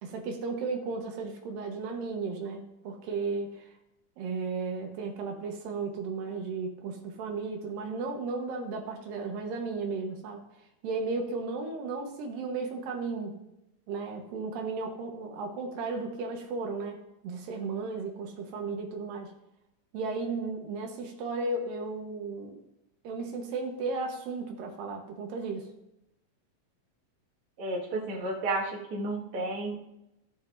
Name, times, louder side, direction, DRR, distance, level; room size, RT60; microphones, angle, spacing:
voice 1, 0.0-3.7 4.2-10.4 10.8-13.4 13.9-19.3 19.9-22.6 23.0-25.7, right 4 dB, 90° right, 2 dB, 2.9 m, -34 dB
voice 2, 27.6-29.8, right 2 dB, 45° right, -3 dB, 2.4 m, -32 dB
16.0 x 7.0 x 2.6 m, 0.88 s
omnidirectional pair, 3.9 m